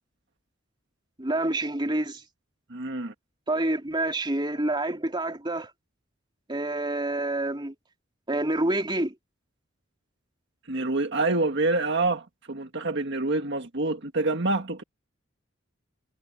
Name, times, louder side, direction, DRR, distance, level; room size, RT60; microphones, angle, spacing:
voice 1, 1.2-2.2 3.5-5.7 6.5-7.7 8.3-9.1, right 2 dB, 25° right, 3.1 m, -27 dB
voice 2, 2.7-3.1 10.7-14.8, right 2 dB, 60° right, 1.7 m, -27 dB
head